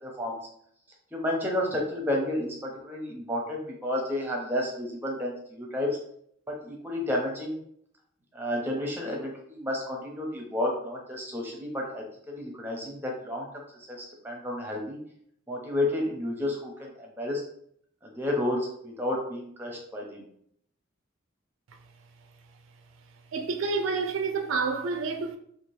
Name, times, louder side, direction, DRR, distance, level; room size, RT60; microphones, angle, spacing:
voice 1, 0.0-0.4 1.1-5.9 6.6-7.6 8.3-13.5 13.8-15.0 15.5-17.4 18.0-20.2, left 1 dB, 10° right, 0.6 m, -31 dB
voice 2, 23.3-25.4, right 4 dB, 75° right, 0.3 m, -29 dB
2.8 x 2.4 x 3.1 m
head